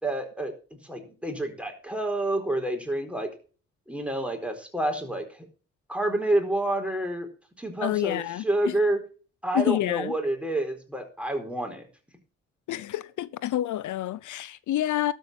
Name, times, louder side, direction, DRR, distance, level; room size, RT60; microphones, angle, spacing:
voice 1, 0.0-3.3 3.9-5.5 5.9-7.3 7.6-9.0 9.4-11.9, right 1 dB, 5° right, 4.3 m, -28 dB
voice 2, 7.8-8.4 9.5-10.1 12.7-15.1, left 13 dB, 80° left, 0.6 m, -28 dB
13.0 x 5.5 x 7.5 m
cardioid pair, 65°, 30 cm